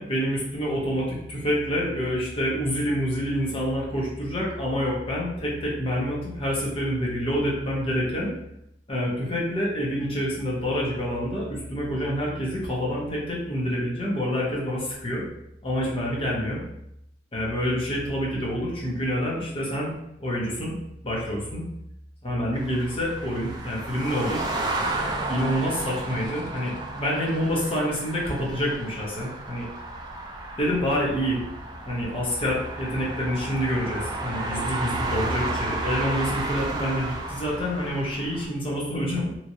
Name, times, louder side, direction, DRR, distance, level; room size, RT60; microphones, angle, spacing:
voice 1, 0.0-8.3 8.9-15.2 15.6-16.6 17.3-19.9 20.2-20.8 21.0-21.6 22.2-24.4 25.3-29.7 30.6-31.4 31.9-39.4, equal, 30° left, -5 dB, 0.9 m, -27 dB
sound 1, 22.5-38.5, right 2 dB, 20° right, 0.4 m, -32 dB
3.0 x 2.5 x 2.7 m, 0.81 s
head